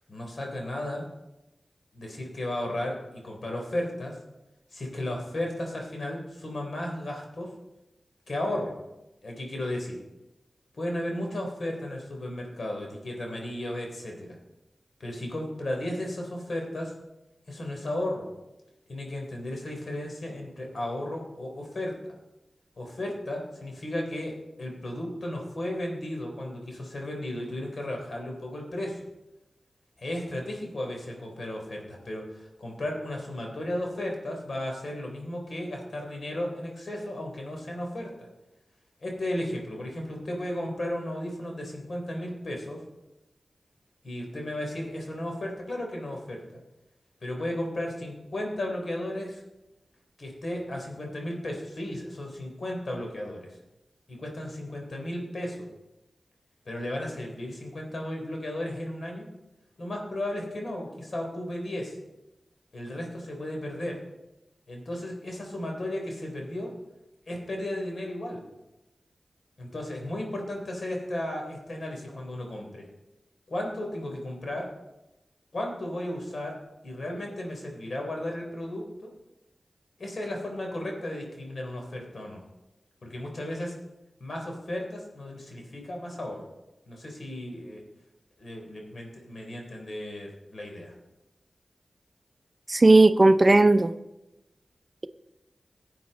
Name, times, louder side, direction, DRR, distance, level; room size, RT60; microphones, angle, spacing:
voice 1, 0.1-1.1 1.9-4.2 4.7-7.5 8.3-8.7 9.2-10.0 10.7-14.4 15.0-16.9 17.5-18.3 18.9-22.0 22.8-29.1 30.0-38.3 39.0-42.8 44.0-46.4 47.2-49.4 50.2-53.6 54.1-55.7 56.7-59.3 59.8-61.9 62.7-64.0 64.7-66.7 67.3-68.4 69.6-72.9 73.5-74.7 75.5-76.6 76.8-79.1 80.0-82.4 83.0-83.8 84.2-86.4 86.9-87.8 88.4-91.0, left 1 dB, 70° left, 1 dB, 3.6 m, -34 dB
voice 2, 92.7-93.9, right 2 dB, 40° right, 11 dB, 0.6 m, -16 dB
16.5 x 8.7 x 4.1 m, 0.96 s
cardioid pair, 50°, 0 cm